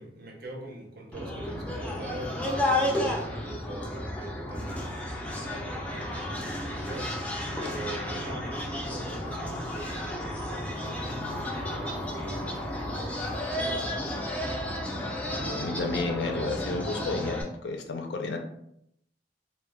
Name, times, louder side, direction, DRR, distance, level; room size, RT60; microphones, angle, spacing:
voice 1, 0.0-14.3, right 1 dB, 55° right, 0.6 m, -43 dB
sound 1, 1.1-17.4, left 1 dB, 10° left, 0.3 m, -32 dB
voice 2, 15.3-18.4, left 3 dB, 70° left, 0.4 m, -31 dB
2.2 x 2.1 x 3.3 m
head